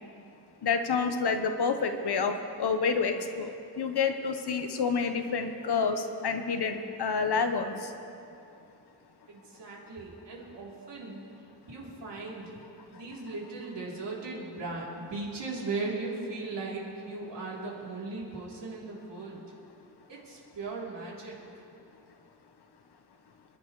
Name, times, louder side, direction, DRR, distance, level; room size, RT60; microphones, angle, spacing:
voice 1, 0.6-2.3 2.6-7.7, left 5 dB, 65° left, 6 dB, 1.1 m, -28 dB
voice 2, 9.3-11.2 11.7-12.5 12.9-19.5 20.1-21.4, right 3 dB, 90° right, -5 dB, 3.4 m, -38 dB
28.0 x 11.0 x 3.2 m, 2.6 s
wide cardioid pair, 160°, 41 cm